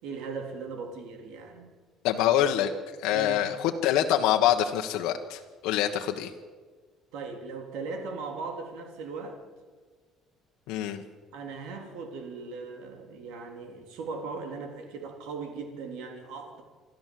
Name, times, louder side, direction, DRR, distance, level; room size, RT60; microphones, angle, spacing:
voice 1, 0.0-1.7 3.1-3.4 7.1-9.4 11.3-16.6, right 4 dB, 80° right, 4 dB, 3.4 m, -38 dB
voice 2, 2.0-2.7 3.0-6.3 10.7-11.0, left 11 dB, 80° left, 4 dB, 1.4 m, -25 dB
26.5 x 13.0 x 7.7 m, 1.4 s
cardioid pair, 175°, 0 cm